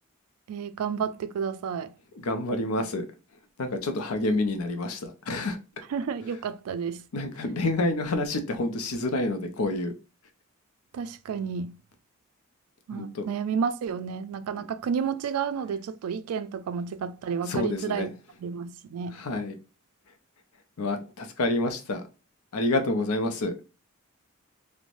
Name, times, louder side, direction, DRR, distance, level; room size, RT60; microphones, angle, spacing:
voice 1, 0.5-1.9 5.9-7.0 10.9-11.7 12.9-18.1 18.4-19.1, right 6 dB, 80° right, 0.3 m, -31 dB
voice 2, 2.2-3.1 3.6-5.6 7.1-9.9 12.9-13.3 17.4-18.1 19.1-19.6 20.8-22.0 22.5-23.5, left 2 dB, 80° left, 0.6 m, -28 dB
3.1 x 2.1 x 2.5 m
head